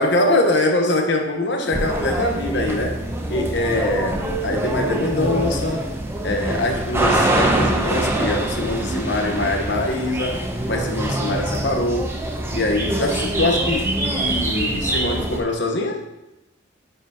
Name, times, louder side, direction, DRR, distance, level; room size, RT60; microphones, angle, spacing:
voice 1, 0.0-3.0 3.3-5.9 6.2-12.1 12.5-16.0, left 2 dB, 60° left, 3 dB, 1.1 m, -23 dB
sound 1, 1.7-15.4, right 1 dB, 10° right, 0.7 m, -24 dB
9.5 x 5.9 x 2.9 m, 0.93 s
head